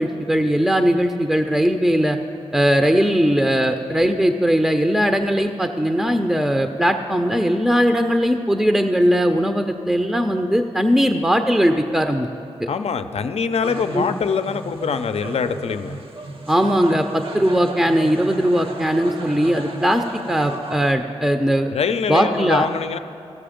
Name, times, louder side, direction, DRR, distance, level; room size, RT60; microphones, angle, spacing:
voice 1, 0.0-2.2 2.5-12.3 12.6-12.7 13.9-14.1 16.5-21.7 22.1-22.7, equal, 5° right, 6 dB, 0.6 m, -19 dB
voice 2, 12.7-16.0 21.7-23.0, left 6 dB, 65° left, 9 dB, 0.5 m, -24 dB
sound 1, 13.6-20.9, right 2 dB, 50° right, 1.0 m, -34 dB
15.0 x 6.8 x 5.1 m, 2.7 s
cardioid pair, 45°, 11 cm